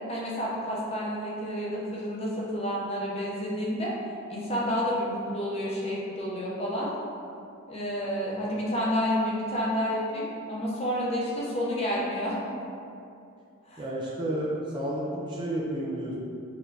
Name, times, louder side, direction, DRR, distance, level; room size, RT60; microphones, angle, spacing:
voice 1, 0.1-3.9 4.3-6.9 7.7-12.4 13.7-13.8, equal, 30° left, -5 dB, 0.7 m, -30 dB
voice 2, 13.8-16.2, right 1 dB, 20° right, -6 dB, 0.4 m, -31 dB
4.2 x 3.2 x 2.7 m, 2.5 s
head